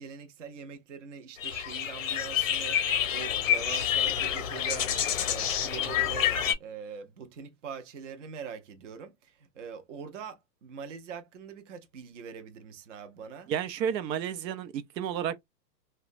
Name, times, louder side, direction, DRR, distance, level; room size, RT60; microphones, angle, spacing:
voice 1, 0.0-4.9 5.3-13.5, right 6 dB, 50° right, 0.6 m, -43 dB
sound 1, 1.4-6.5, left 9 dB, 55° left, 0.5 m, -28 dB
voice 2, 13.5-15.4, right 8 dB, 90° right, 0.6 m, -31 dB
2.9 x 2.2 x 2.4 m
hypercardioid pair, 180°, 50 cm